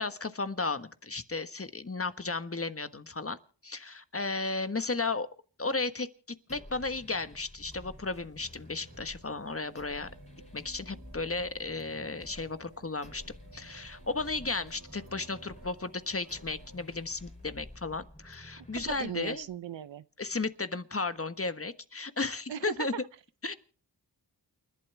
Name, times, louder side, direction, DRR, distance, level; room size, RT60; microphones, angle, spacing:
voice 1, 0.0-3.4 3.6-5.3 5.6-6.1 6.5-10.1 10.5-13.2 13.5-19.5 20.2-22.9 23.4-23.5, left 3 dB, 30° left, 1.4 m, -34 dB
sound 1, 6.5-19.5, left 1 dB, 15° left, 3.4 m, -51 dB
sound 2, 7.0-17.9 19.1-19.2, right 3 dB, 60° right, 2.7 m, -57 dB
voice 2, 18.7-20.0 22.5-22.9, right 10 dB, 85° right, 0.7 m, -38 dB
29.0 x 11.5 x 3.4 m
cardioid pair, 45°, 43 cm